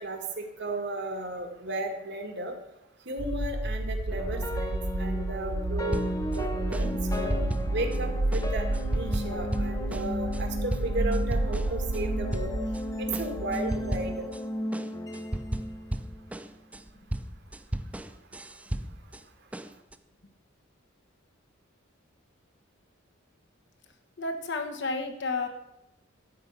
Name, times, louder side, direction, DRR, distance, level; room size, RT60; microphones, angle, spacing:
voice 1, 0.0-2.5 3.1-6.1 6.3-7.3 7.7-12.5 13.0-14.3, right 2 dB, 55° right, 5 dB, 1.8 m, -34 dB
sound 1, 3.2-14.2, right 1 dB, 85° right, 0.8 m, -31 dB
sound 2, 4.1-16.4, equal, 15° left, 0.8 m, -35 dB
sound 3, 5.9-6.4 6.7-8.0 8.3-12.0 12.3-12.8 13.1-14.4 14.7-19.2 19.5-20.0, right 1 dB, 5° right, 0.4 m, -35 dB
voice 2, 24.2-25.5, left 3 dB, 60° left, 5 dB, 1.5 m, -31 dB
12.0 x 5.3 x 8.1 m, 0.90 s
head